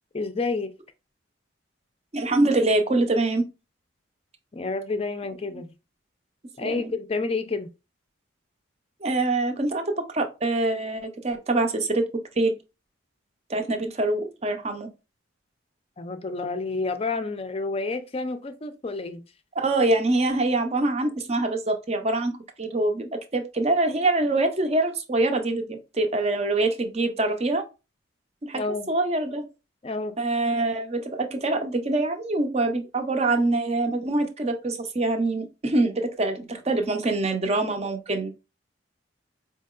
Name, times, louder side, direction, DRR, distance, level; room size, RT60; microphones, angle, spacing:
voice 1, 0.1-0.7 4.5-5.7 6.6-7.7 16.0-19.2 28.5-28.9 29.8-30.2, left 3 dB, 30° left, 0.4 m, -29 dB
voice 2, 2.1-3.4 6.6-6.9 9.0-12.1 12.4-12.5 13.5-14.9 19.6-27.6 28.4-28.6 28.9-29.5 30.2-38.3, right 2 dB, 30° right, 0.5 m, -24 dB
4.5 x 2.8 x 2.4 m
head